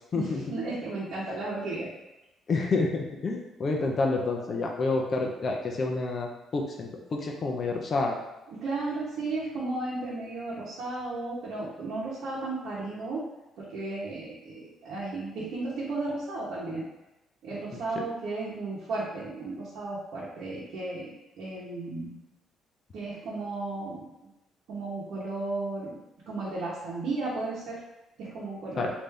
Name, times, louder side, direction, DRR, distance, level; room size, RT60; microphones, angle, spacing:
voice 1, 0.1-1.9 8.5-13.2 13.6-16.9 17.4-22.2 22.9-24.1 24.7-26.0 26.3-27.8 28.2-28.9, right 2 dB, 70° right, -8 dB, 0.9 m, -34 dB
voice 2, 2.5-8.2 28.8-28.9, left 3 dB, 35° left, 1 dB, 0.4 m, -28 dB
3.3 x 2.6 x 3.4 m, 0.98 s
cardioid pair, 165°, 0 cm